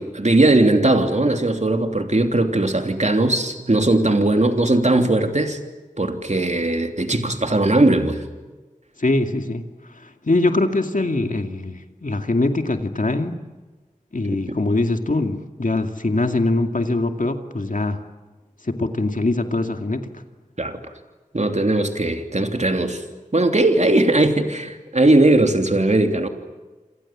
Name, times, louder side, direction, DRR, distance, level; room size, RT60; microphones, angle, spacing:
voice 1, 0.0-5.6 6.0-8.2 14.5-14.6 20.6-20.8 21.3-23.0 23.3-26.3, right 2 dB, 55° right, 5 dB, 3.1 m, -19 dB
voice 2, 9.0-9.6 9.9-13.4 14.1-18.0 18.6-20.2, left 2 dB, 70° left, 6 dB, 2.4 m, -22 dB
28.0 x 27.5 x 7.5 m, 1.2 s
wide cardioid pair, 45°, 14 cm